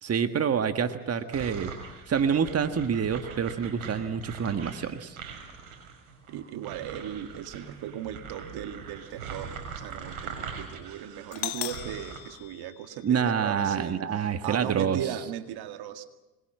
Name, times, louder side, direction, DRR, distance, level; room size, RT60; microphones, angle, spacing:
voice 1, 0.0-1.7 2.1-5.2 13.0-15.0, right 7 dB, 35° right, 9 dB, 1.7 m, -27 dB
sound 1, 1.3-12.2, right 6 dB, 75° right, 6.2 m, -42 dB
voice 2, 6.3-16.1, right 10 dB, 60° right, 8 dB, 2.0 m, -37 dB
Doorbell, 11.3-13.3, left 16 dB, 70° left, 1.5 m, -38 dB
26.0 x 21.5 x 7.7 m, 1.1 s
hypercardioid pair, 70°, 43 cm